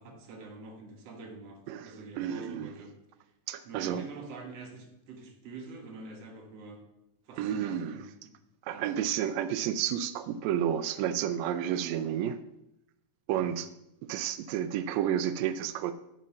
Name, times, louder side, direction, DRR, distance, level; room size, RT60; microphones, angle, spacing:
voice 1, 0.0-3.0 3.6-6.8 7.3-8.3 8.7-8.9 13.3-13.6, right 3 dB, 55° right, 3 dB, 2.3 m, -46 dB
voice 2, 1.7-2.7 3.5-4.1 7.4-8.0 8.6-12.4 13.3-13.7 14.1-15.9, right 10 dB, 85° right, 12 dB, 1.5 m, -31 dB
10.0 x 5.2 x 6.7 m, 0.87 s
omnidirectional pair, 3.7 m